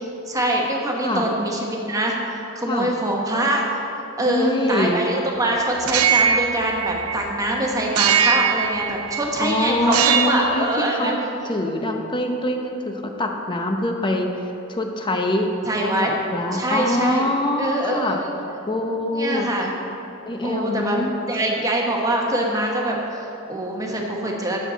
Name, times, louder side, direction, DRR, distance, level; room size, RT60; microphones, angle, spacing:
voice 1, 0.3-3.6 4.2-11.1 15.7-16.1 16.5-17.3 17.6-18.3 19.1-19.7 20.4-21.0 21.3-24.6, right 1 dB, 15° right, -1 dB, 1.2 m, -24 dB
voice 2, 4.2-5.0 9.4-15.5 15.8-18.2 18.7-19.5 20.3-21.1, left 1 dB, 20° left, 3 dB, 0.8 m, -24 dB
sound 1, 5.8-7.4 8.0-9.3 9.8-10.6, right 8 dB, 80° right, 0.5 m, -21 dB
14.0 x 6.6 x 4.0 m, 3.0 s
head